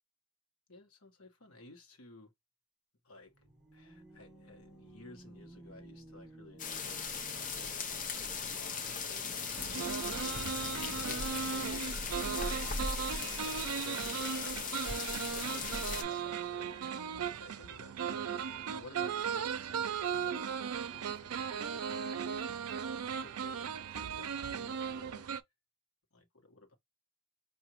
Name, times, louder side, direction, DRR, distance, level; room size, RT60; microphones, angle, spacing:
voice 1, 0.7-2.3 3.0-25.3 26.1-26.8, left 2 dB, 75° left, 1.3 m, -55 dB
sound 1, 3.2-8.0, right 1 dB, 5° right, 1.1 m, -55 dB
sound 2, 6.6-16.0, left 5 dB, 35° left, 0.7 m, -38 dB
sound 3, 9.5-25.4, right 7 dB, 85° right, 0.5 m, -37 dB
5.0 x 2.7 x 3.0 m
head